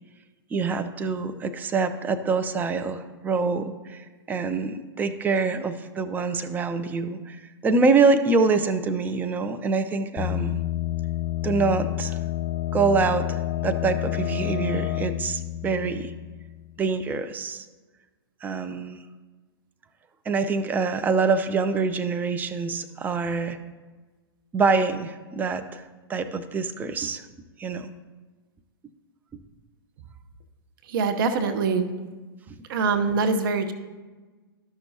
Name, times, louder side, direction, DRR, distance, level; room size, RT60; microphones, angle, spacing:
voice 1, 0.5-7.4 7.6-10.6 11.4-12.2 12.7-16.1 16.8-17.7 18.4-19.0 20.3-23.6 24.5-27.2 27.6-27.9, right 4 dB, 15° right, 9 dB, 0.4 m, -25 dB
sound 1, 10.2-16.8, left 14 dB, 30° left, 0.5 m, -29 dB
voice 2, 30.9-31.8 32.7-33.7, right 4 dB, 60° right, 7 dB, 0.9 m, -23 dB
12.0 x 6.0 x 2.8 m, 1.3 s
hypercardioid pair, 110°, 13 cm